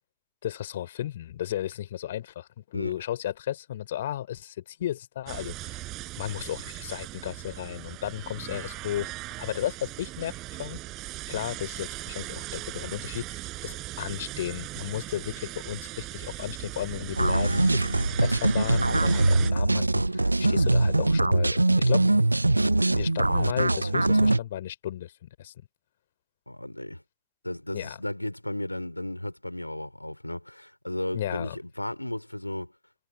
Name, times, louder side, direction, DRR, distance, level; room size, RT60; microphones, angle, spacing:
voice 1, 0.4-5.8 6.2-9.1 9.4-10.8 11.3-22.0 22.9-25.5 27.7-28.0 31.1-31.6, left 12 dB, 60° left, 3.6 m, -34 dB
sound 1, 5.3-19.5, right 18 dB, 40° right, 4.9 m, -38 dB
sound 2, 17.2-24.4, right 2 dB, 85° right, 0.3 m, -22 dB
voice 2, 26.5-27.0 27.4-32.7, left 1 dB, 85° left, 4.3 m, -34 dB
figure-of-eight pair, 90°, 0 cm